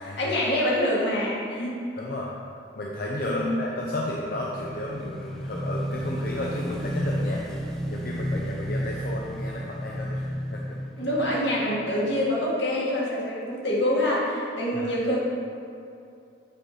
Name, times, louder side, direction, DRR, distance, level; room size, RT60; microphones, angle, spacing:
voice 1, 0.0-1.8 3.2-3.6 11.0-15.2, left 1 dB, 70° left, -5 dB, 1.8 m, -26 dB
voice 2, 2.0-2.3 2.8-7.6 7.9-10.8 14.7-14.9, left 1 dB, 50° left, -3 dB, 0.6 m, -33 dB
Motorcycle / Engine, 3.7-12.1, equal, 5° left, 0.6 m, -32 dB
7.7 x 4.6 x 4.9 m, 2.5 s
head